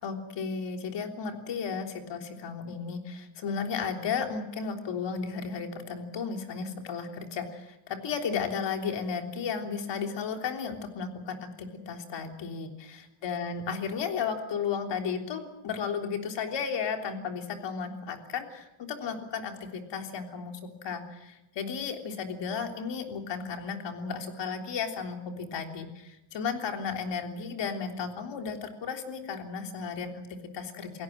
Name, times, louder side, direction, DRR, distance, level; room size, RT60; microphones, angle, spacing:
voice 1, 0.0-12.7 13.2-31.0, left 6 dB, 60° left, 4 dB, 3.5 m, -34 dB
28.0 x 17.5 x 7.6 m, 0.95 s
cardioid pair, 145°, 49 cm